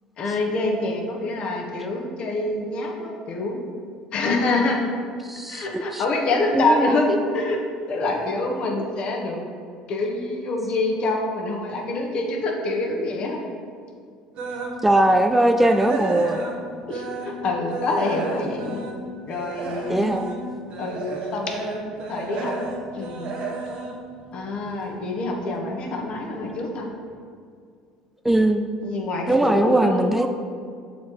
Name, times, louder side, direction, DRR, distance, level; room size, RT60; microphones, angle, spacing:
voice 1, 0.2-3.6 4.1-4.8 5.5-7.6 7.9-9.4 9.9-13.4 16.9-18.8 19.3-20.1 20.8-22.5 22.9-23.4 24.3-26.9 28.8-30.2, left 2 dB, 50° left, 1 dB, 1.2 m, -26 dB
voice 2, 5.2-6.0 6.6-6.9 14.8-16.4 19.9-20.3 28.2-28.7 29.3-30.3, right 1 dB, 10° right, 6 dB, 0.4 m, -20 dB
sound 1, 14.3-14.8 15.2-17.4 17.7-24.9 25.3-25.5 26.0-26.1 26.5-26.6, right 3 dB, 55° right, 1.2 m, -32 dB
7.0 x 4.2 x 4.6 m, 2.2 s
supercardioid pair, 85°, 2 cm